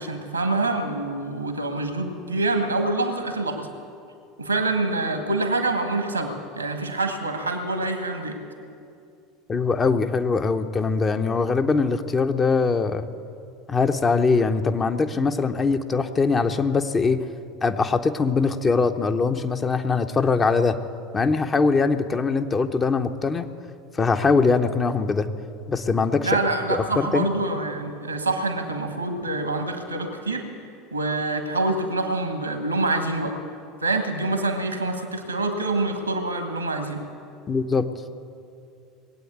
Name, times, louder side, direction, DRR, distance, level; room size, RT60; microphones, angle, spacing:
voice 1, 0.0-3.7 4.4-8.4 26.2-30.4 30.9-33.3 33.8-37.0, right 2 dB, 85° right, 6 dB, 1.6 m, -26 dB
voice 2, 9.5-13.1 13.7-17.3 17.6-20.8 21.1-23.5 23.9-25.3 25.7-26.4 26.7-27.3 37.5-37.9, left 4 dB, 25° left, 7 dB, 0.8 m, -22 dB
20.5 x 8.6 x 8.3 m, 2.5 s
figure-of-eight pair, 70°, 0 cm